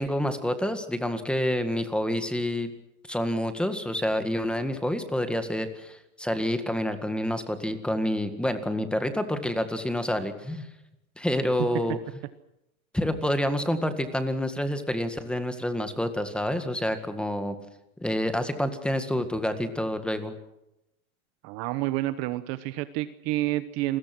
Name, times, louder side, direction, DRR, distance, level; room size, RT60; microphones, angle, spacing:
voice 1, 0.0-2.7 3.1-10.7 11.2-12.0 12.9-17.6 18.0-20.3, left 1 dB, ahead, 9 dB, 1.8 m, -28 dB
voice 2, 21.4-24.0, right 16 dB, 35° right, 12 dB, 1.0 m, -29 dB
29.0 x 21.5 x 6.2 m, 0.88 s
supercardioid pair, 150°, 43 cm